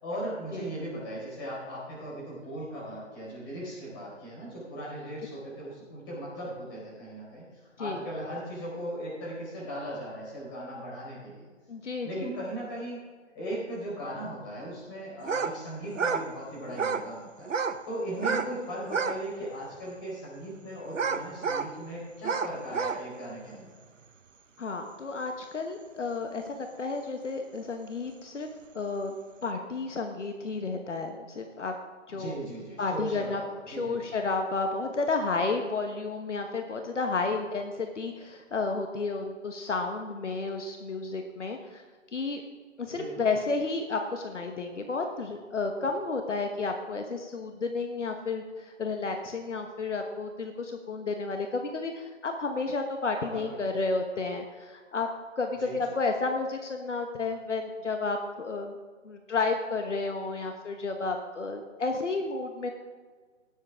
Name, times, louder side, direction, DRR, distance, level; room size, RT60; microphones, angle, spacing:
voice 1, 0.0-7.4 7.8-11.5 12.0-13.0 13.3-17.5 17.9-23.7 32.1-34.0 43.0-43.2 53.2-53.7 55.6-55.8, right 1 dB, 20° left, -6 dB, 4.2 m, -38 dB
voice 2, 11.7-12.2 24.6-28.5 28.7-29.1 29.4-31.7 32.1-32.3 32.8-33.4 33.7-41.8 42.1-42.4 42.8-55.1 55.4-58.8 59.0-62.7, left 3 dB, 70° left, 4 dB, 1.3 m, -31 dB
sound 1, 15.2-15.5 15.9-16.3 16.7-17.1 17.4-17.8 18.1-18.5 18.8-19.2 19.7-19.8 20.9-21.7 22.2-23.0, right 5 dB, 80° right, 0.9 m, -30 dB
18.5 x 8.0 x 3.6 m, 1.5 s
hypercardioid pair, 165°, 37 cm